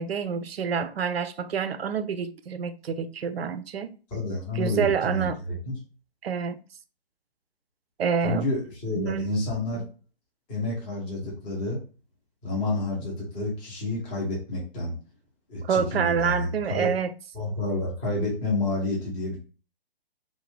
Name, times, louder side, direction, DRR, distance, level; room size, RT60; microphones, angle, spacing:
voice 1, 0.0-3.9 4.5-5.4 6.2-6.6 8.0-8.5 9.0-9.5 15.6-17.1, right 6 dB, 75° right, 0.5 m, -27 dB
voice 2, 4.1-5.8 8.2-9.8 10.5-11.8 12.4-15.0 15.5-16.9 17.3-19.4, left 2 dB, 10° left, 0.4 m, -29 dB
2.5 x 2.1 x 3.3 m
figure-of-eight pair, 140°, 31 cm